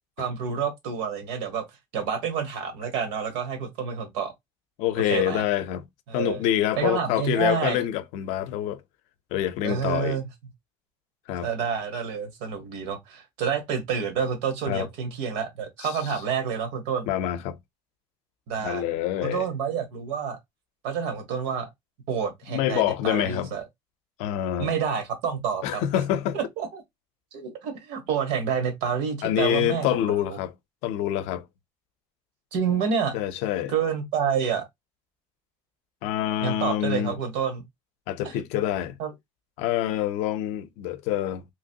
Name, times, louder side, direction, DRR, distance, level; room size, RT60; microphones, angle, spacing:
voice 1, 0.2-1.6 1.9-4.3 5.1-5.4 6.1-6.4 6.8-7.8 9.6-10.3 11.4-17.1 18.5-18.8 19.2-20.4 20.8-21.7 22.1-23.6 24.6-25.8 26.6-26.8 27.3-29.9 30.3-30.4 32.5-33.1 33.7-34.7 36.4-37.6 38.2-38.3 39.0-39.1, right 7 dB, 75° right, 1.2 m, -28 dB
voice 2, 4.8-5.8 6.1-8.8 9.3-10.2 11.3-11.5 14.7-14.9 15.8-16.1 17.1-17.6 18.6-19.5 22.5-23.5 24.2-24.7 25.6-26.4 29.2-30.5 30.8-31.5 33.1-33.7 36.0-37.2 38.1-39.0 39.6-41.5, left 12 dB, 70° left, 0.5 m, -26 dB
2.9 x 2.9 x 2.7 m
cardioid pair, 175°, 11 cm